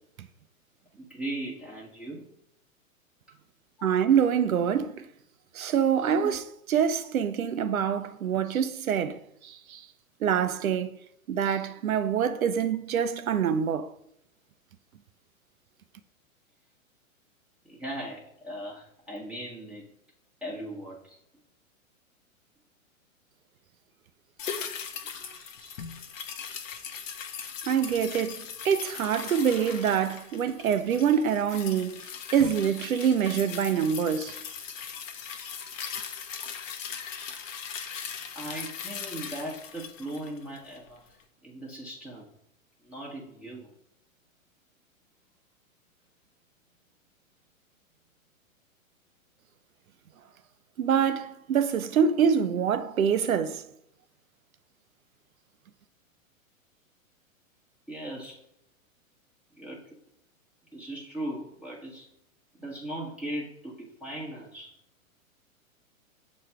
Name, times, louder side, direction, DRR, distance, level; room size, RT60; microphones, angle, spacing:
voice 1, 1.0-2.3 3.8-4.1 6.2-6.4 17.6-19.9 20.4-21.2 37.2-37.3 38.3-41.0 41.4-42.3 42.8-43.7 57.9-58.4 59.5-59.9 60.7-62.1 62.5-64.7, right 1 dB, 5° right, 1.1 m, -38 dB
voice 2, 3.8-5.0 5.6-6.4 6.7-9.2 9.4-9.8 10.2-10.9 11.3-13.9 27.7-32.0 32.3-34.3 50.8-53.6, right 8 dB, 75° right, 0.7 m, -25 dB
sound 1, 24.4-40.9 41.2-41.3, left 7 dB, 65° left, 0.9 m, -39 dB
6.9 x 3.2 x 4.4 m
hypercardioid pair, 110°, 42 cm